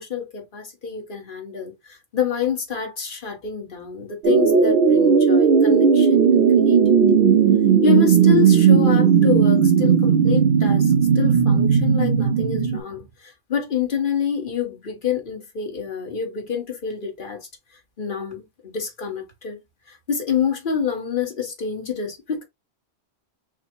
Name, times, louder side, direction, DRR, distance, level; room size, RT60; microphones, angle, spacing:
voice 1, 0.0-7.0 7.8-17.5 18.0-19.6 19.9-22.4, left 7 dB, 50° left, 1.4 m, -27 dB
Retro ufo fly by, 4.2-12.8, right 6 dB, 65° right, 0.8 m, -16 dB
5.6 x 2.2 x 3.0 m
omnidirectional pair, 1.1 m